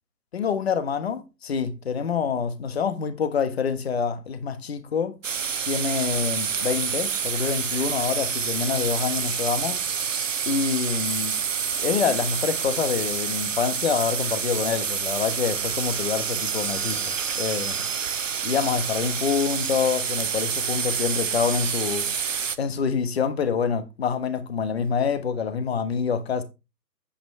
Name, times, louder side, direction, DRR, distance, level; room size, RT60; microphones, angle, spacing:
voice 1, 0.3-5.1 5.6-9.8 10.5-11.3 11.8-17.9 18.4-22.1 22.6-26.4, left 6 dB, 40° left, 1.3 m, -26 dB
sound 1, 5.2-22.6, right 7 dB, 50° right, 0.8 m, -28 dB
8.9 x 8.4 x 3.3 m
figure-of-eight pair, 140°, 49 cm